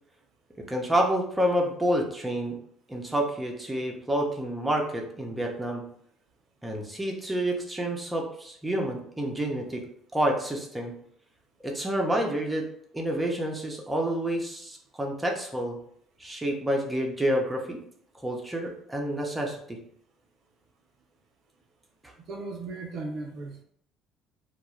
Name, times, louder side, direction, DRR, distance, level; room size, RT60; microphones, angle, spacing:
voice 1, 0.6-2.6 2.9-5.8 6.6-9.8 10.1-10.9 11.6-12.7 12.9-15.8 16.2-17.8 18.2-19.8 22.0-22.1, right 1 dB, 10° right, 0 dB, 0.7 m, -28 dB
voice 2, 22.3-23.6, right 3 dB, 55° right, 2 dB, 0.4 m, -36 dB
2.2 x 2.0 x 3.1 m, 0.66 s
hypercardioid pair, 55°, 0 cm